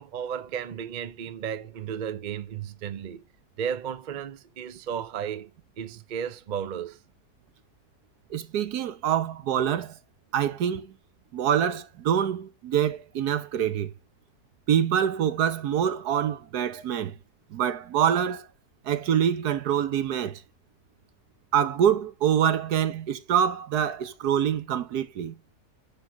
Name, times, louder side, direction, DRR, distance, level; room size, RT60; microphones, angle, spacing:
voice 1, 0.0-3.2 3.6-5.5 5.8-7.0, right 8 dB, 45° right, 0.6 m, -34 dB
voice 2, 8.3-9.9 10.3-10.9 11.3-13.9 14.7-17.1 17.5-18.5 18.8-20.4 21.5-25.3, right 9 dB, 80° right, 1.5 m, -25 dB
10.0 x 4.0 x 4.7 m
omnidirectional pair, 1.6 m